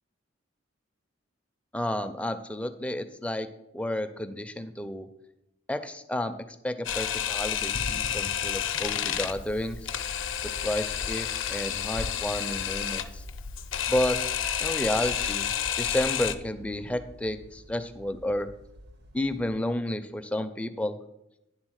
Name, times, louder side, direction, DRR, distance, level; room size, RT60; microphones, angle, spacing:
voice 1, 1.7-3.5 3.7-5.1 5.7-6.3 6.6-9.9 10.4-13.2 13.9-14.2 14.6-15.5 15.8-18.5 19.1-21.0, left 1 dB, 5° left, 9 dB, 0.4 m, -31 dB
Camera, 6.9-16.4, left 9 dB, 75° left, 0.5 m, -30 dB
sound 1, 9.1-19.6, equal, 55° right, 0.6 m, -48 dB
9.7 x 3.9 x 6.3 m, 0.86 s
head